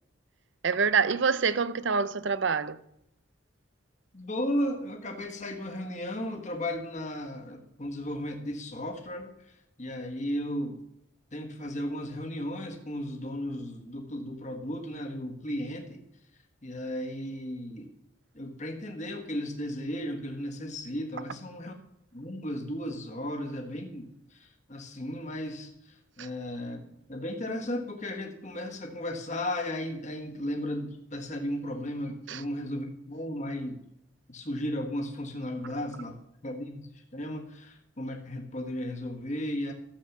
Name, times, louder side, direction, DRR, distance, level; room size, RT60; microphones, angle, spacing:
voice 1, 0.6-2.8 26.2-26.3 32.3-32.4, right 5 dB, 60° right, 0.6 m, -26 dB
voice 2, 4.1-10.8 11.3-16.0 16.6-17.9 18.3-21.7 22.1-26.8 27.1-33.8 34.3-39.7, left 1 dB, 35° left, 1.5 m, -35 dB
13.0 x 7.4 x 7.1 m
head